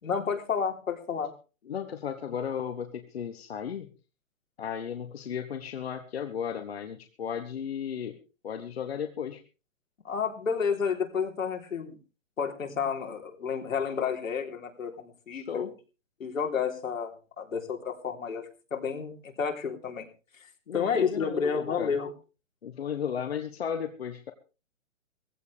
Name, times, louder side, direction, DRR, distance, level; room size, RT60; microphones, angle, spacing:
voice 1, 0.0-1.3 10.0-12.0 12.4-15.7 16.2-18.4 18.7-20.1 20.7-22.1, left 6 dB, 80° left, 3 dB, 3.7 m, -30 dB
voice 2, 1.7-3.9 4.6-8.2 8.4-9.4 15.3-15.7 20.7-21.9 22.6-24.3, left 8 dB, 50° left, 7 dB, 1.3 m, -35 dB
18.0 x 15.5 x 3.4 m, 0.34 s
hypercardioid pair, 175°, 39 cm